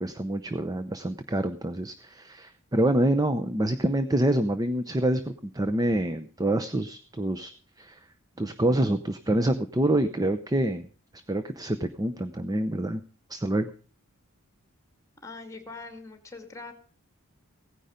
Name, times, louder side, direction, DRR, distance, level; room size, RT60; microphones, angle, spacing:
voice 1, 0.0-7.5 7.8-8.0 8.4-10.9 11.3-13.0 13.3-13.7, right 1 dB, 15° right, 10 dB, 0.7 m, -26 dB
voice 2, 15.2-16.7, left 3 dB, 15° left, 6 dB, 2.3 m, -42 dB
17.0 x 9.9 x 5.1 m, 0.41 s
head